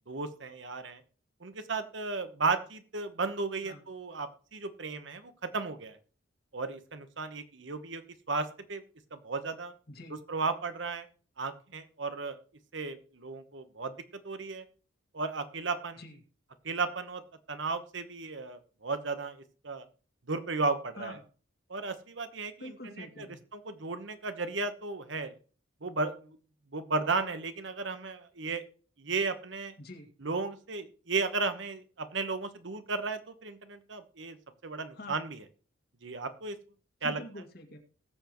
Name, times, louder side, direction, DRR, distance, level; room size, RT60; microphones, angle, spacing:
voice 1, 0.1-1.0 1.4-6.0 6.5-8.0 8.3-8.8 9.1-9.7 10.3-11.1 11.4-12.4 12.7-13.9 14.2-14.6 15.1-16.0 16.6-17.2 17.5-19.8 20.3-21.2 21.7-23.3 23.5-25.3 25.8-26.4 26.7-28.6 29.0-29.7 30.2-34.4 34.6-35.4 36.0-36.5 37.0-37.2, right 3 dB, 65° right, 10 dB, 1.1 m, -34 dB
voice 2, 9.9-10.2 16.0-16.2 21.0-21.2 22.6-23.4 29.8-30.1 34.9-35.2 37.0-37.8, left 1 dB, 50° left, 4 dB, 2.0 m, -45 dB
20.0 x 7.1 x 3.1 m, 0.40 s
head